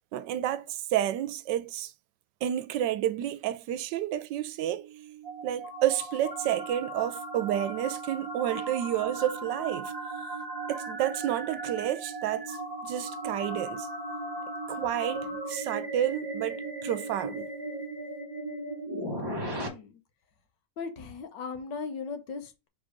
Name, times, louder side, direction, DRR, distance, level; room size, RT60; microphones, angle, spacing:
voice 1, 0.1-1.9 2.4-4.9 5.4-9.9 10.7-13.9 14.7-17.5, right 12 dB, 80° right, 1.2 m, -30 dB
sound 1, 4.6-19.7, right 2 dB, 20° right, 0.7 m, -37 dB
voice 2, 20.8-22.7, left 5 dB, 85° left, 1.7 m, -38 dB
5.0 x 3.8 x 5.0 m
omnidirectional pair, 1.9 m